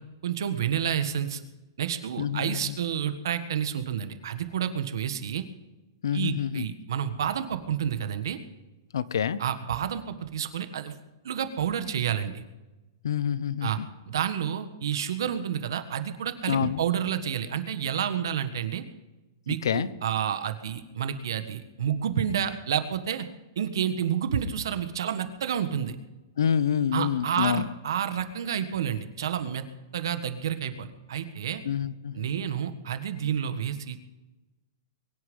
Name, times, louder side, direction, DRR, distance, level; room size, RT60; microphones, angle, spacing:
voice 1, 0.2-1.4 1.8-5.5 6.1-8.4 9.4-10.9 11.2-12.4 13.6-13.8 14.1-18.8 19.5-23.3 23.5-26.0 26.9-29.6 29.9-31.6 32.1-34.0, right 9 dB, 75° right, 9 dB, 1.5 m, -29 dB
voice 2, 2.2-2.8 6.0-6.7 8.9-9.4 13.0-13.9 16.5-16.8 19.6-19.9 26.4-27.7 31.6-32.3, left 8 dB, 85° left, 17 dB, 0.8 m, -27 dB
22.5 x 10.0 x 5.4 m, 1.1 s
hypercardioid pair, 155°, 2 cm